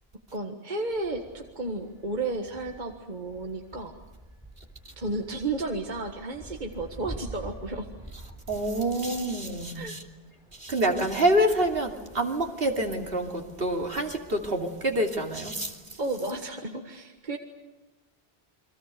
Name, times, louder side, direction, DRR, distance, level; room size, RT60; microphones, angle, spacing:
voice 1, 0.3-3.9 5.0-7.9 9.7-9.9 10.9-11.1 16.0-17.4, right 2 dB, 50° right, 1.8 m, -33 dB
Wind, 0.9-15.8, right 1 dB, 5° right, 6.2 m, -48 dB
voice 2, 8.5-10.0 10.6-15.8, right 1 dB, 65° right, 3.0 m, -27 dB
29.0 x 23.5 x 6.8 m
omnidirectional pair, 1.0 m